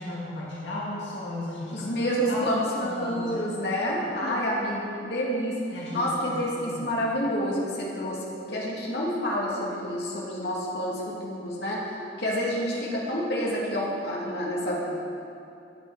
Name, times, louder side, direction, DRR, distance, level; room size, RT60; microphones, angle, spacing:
voice 1, 0.0-1.9 2.3-3.3 4.0-4.4 5.7-6.3 6.6-6.9, left 1 dB, 80° left, -7 dB, 1.9 m, -35 dB
voice 2, 1.7-5.5 5.9-11.8 12.2-15.0, equal, 65° left, -5 dB, 2.3 m, -28 dB
12.0 x 8.9 x 4.8 m, 2.7 s
head